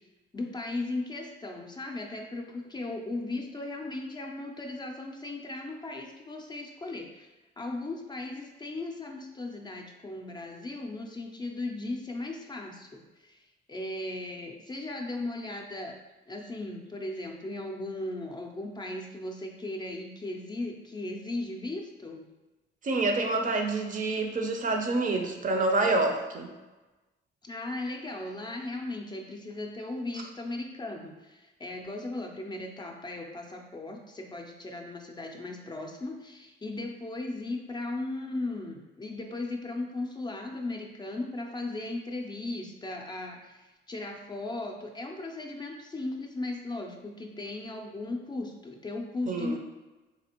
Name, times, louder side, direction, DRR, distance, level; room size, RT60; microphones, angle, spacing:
voice 1, 0.3-7.3 7.6-13.4 13.7-16.0 16.3-22.3 27.4-49.6, left 2 dB, 20° left, 2 dB, 0.4 m, -37 dB
voice 2, 22.8-26.5 49.3-49.6, right 2 dB, 40° right, 3 dB, 0.5 m, -27 dB
4.1 x 2.5 x 2.9 m, 1.1 s
cardioid pair, 90°, 20 cm